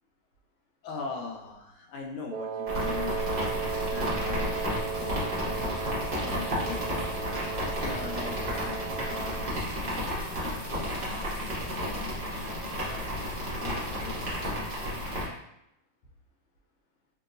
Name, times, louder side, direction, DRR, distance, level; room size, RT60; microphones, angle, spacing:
voice 1, 0.8-6.9 7.6-10.1 10.4-13.3 13.6-14.6, left 5 dB, 80° left, 0 dB, 1.5 m, -42 dB
Wind instrument woodwind instrument, 2.3-9.6, right 7 dB, 85° right, 1.5 m, -36 dB
sound 1, 2.7-15.2, equal, 45° right, 0.7 m, -32 dB
3.8 x 2.8 x 2.5 m, 0.83 s
omnidirectional pair, 2.4 m